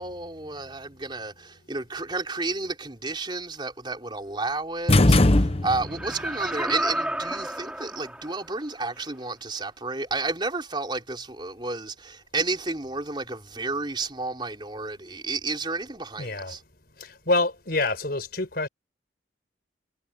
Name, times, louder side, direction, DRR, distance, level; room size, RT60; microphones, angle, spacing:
voice 1, 0.0-16.6, right 3 dB, 25° right, 3.7 m, -31 dB
sound 1, 4.9-6.1, left 2 dB, 35° left, 0.9 m, -19 dB
Laughter, 5.8-8.5 9.0-9.1, right 1 dB, 5° right, 2.8 m, -31 dB
voice 2, 16.2-16.6 17.0-18.7, left 2 dB, 55° left, 5.5 m, -27 dB
head